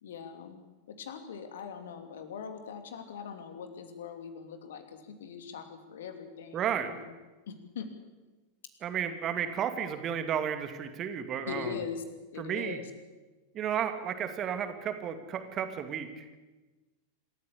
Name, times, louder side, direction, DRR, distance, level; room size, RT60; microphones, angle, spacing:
voice 1, 0.0-0.6 0.9-7.2 7.5-7.9 9.3-9.4 11.4-12.0 12.3-12.9, left 7 dB, 60° left, 7 dB, 2.8 m, -41 dB
voice 2, 6.5-6.9 8.8-11.7 12.4-12.8 13.5-16.4, right 8 dB, 30° right, 8 dB, 2.4 m, -33 dB
26.5 x 14.0 x 8.6 m, 1.2 s
figure-of-eight pair, 90°, 0 cm